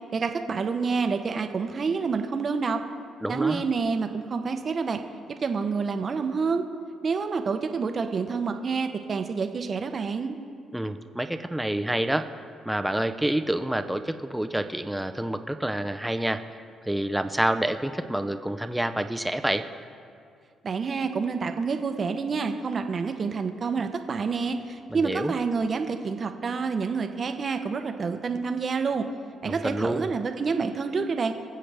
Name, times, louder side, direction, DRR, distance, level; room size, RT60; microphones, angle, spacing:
voice 1, 0.1-2.8 3.3-5.0 5.3-6.6 7.0-10.4 20.6-29.1 29.4-31.3, right 5 dB, 45° right, 7 dB, 0.7 m, -28 dB
voice 2, 3.2-3.6 10.7-12.3 12.7-16.5 16.8-19.6 24.9-25.3 29.4-30.1, right 1 dB, 5° right, 8 dB, 0.5 m, -28 dB
20.0 x 7.6 x 3.4 m, 2.4 s
cardioid pair, 90°, 0 cm